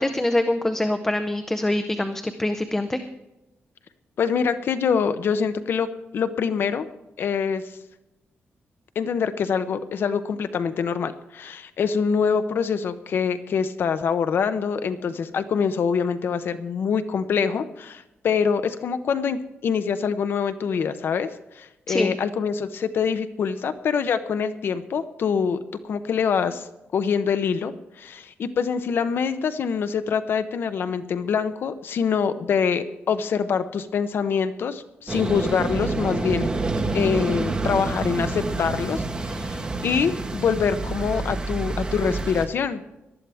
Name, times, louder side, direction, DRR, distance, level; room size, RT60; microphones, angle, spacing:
voice 1, 0.0-3.1 21.9-22.2, left 1 dB, 10° left, 8 dB, 0.6 m, -24 dB
voice 2, 4.2-5.9 6.1-6.9 7.2-7.6 9.0-21.3 21.5-26.7 26.9-36.5 36.9-42.8, left 6 dB, 55° left, 11 dB, 0.7 m, -25 dB
sound 1, 35.1-42.5, right 3 dB, 20° right, 1.3 m, -28 dB
19.0 x 12.5 x 3.4 m, 0.94 s
wide cardioid pair, 170°, 4 cm